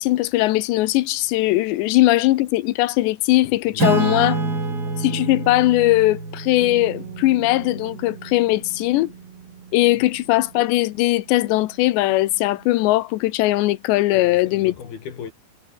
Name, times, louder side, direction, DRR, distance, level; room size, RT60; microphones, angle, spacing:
voice 1, 0.0-4.4 5.0-9.1 9.7-14.7, left 17 dB, 85° left, 3.1 m, -19 dB
voice 2, 3.7-4.6 10.0-10.1 14.1-15.3, left 7 dB, 60° left, 5.2 m, -38 dB
Acoustic guitar / Strum, 3.8-8.8, right 3 dB, 20° right, 4.5 m, -27 dB
Bass guitar, 6.6-12.9, right 9 dB, 65° right, 4.6 m, -43 dB
omnidirectional pair, 5.1 m